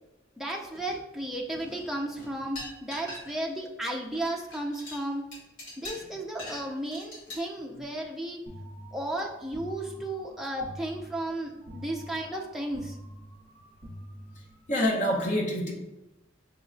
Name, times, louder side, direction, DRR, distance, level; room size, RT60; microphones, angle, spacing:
voice 1, 0.4-5.3 5.8-8.4 8.9-13.0, right 1 dB, ahead, -1 dB, 0.4 m, -34 dB
sound 1, 0.8-1.3 1.5-3.6 3.9-7.4, left 1 dB, 70° left, 1.5 m, -43 dB
sound 2, 8.5-14.8, equal, 40° right, 0.8 m, -46 dB
voice 2, 14.7-15.7, equal, 40° left, -2 dB, 0.7 m, -26 dB
6.1 x 2.2 x 2.5 m, 0.95 s
head